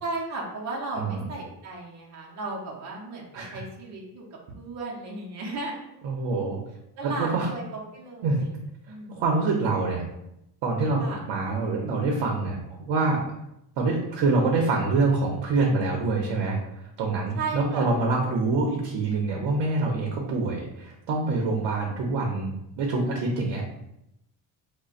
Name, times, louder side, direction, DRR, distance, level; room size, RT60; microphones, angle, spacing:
voice 1, 0.0-4.3 4.6-6.5 7.0-8.5 8.9-9.2 11.0-11.2 17.3-17.9 21.8-22.0, right 3 dB, 40° right, -2 dB, 0.6 m, -35 dB
voice 2, 6.0-6.6 7.0-7.5 8.2-8.4 9.1-10.0 10.6-11.0 11.3-13.2 13.8-16.6 17.0-23.7, right 3 dB, 75° right, 0 dB, 0.8 m, -25 dB
5.1 x 2.2 x 2.4 m, 0.83 s
cardioid pair, 175°, 45 cm